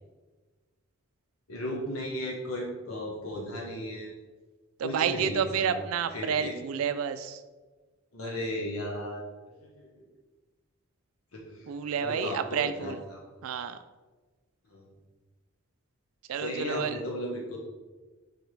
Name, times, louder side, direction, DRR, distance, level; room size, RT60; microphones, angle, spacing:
voice 1, 1.5-4.1 4.8-5.8 6.1-6.5 8.1-9.2 9.6-10.0 11.3-11.7 12.0-13.2 14.7-14.8 16.3-17.6, left 1 dB, 85° left, -2 dB, 1.0 m, -35 dB
voice 2, 4.8-7.4 11.7-13.0 13.4-13.8 16.3-17.0, right 7 dB, 80° right, 10 dB, 0.3 m, -30 dB
5.0 x 4.3 x 4.6 m, 1.3 s
head